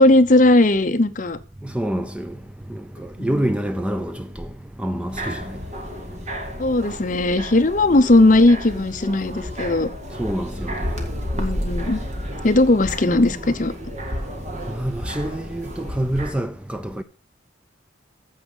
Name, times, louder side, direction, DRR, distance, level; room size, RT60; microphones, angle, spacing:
voice 1, 0.0-1.4 3.2-3.3 6.6-9.9 11.4-12.0 12.4-13.7, left 2 dB, 40° left, 0.8 m, -17 dB
voice 2, 1.7-2.3 3.0-4.5 4.8-5.4 10.2-11.1 14.7-17.0, right 1 dB, 5° right, 0.4 m, -26 dB
sound 1, 5.1-16.3, equal, 35° right, 1.9 m, -31 dB
14.5 x 5.0 x 5.4 m
head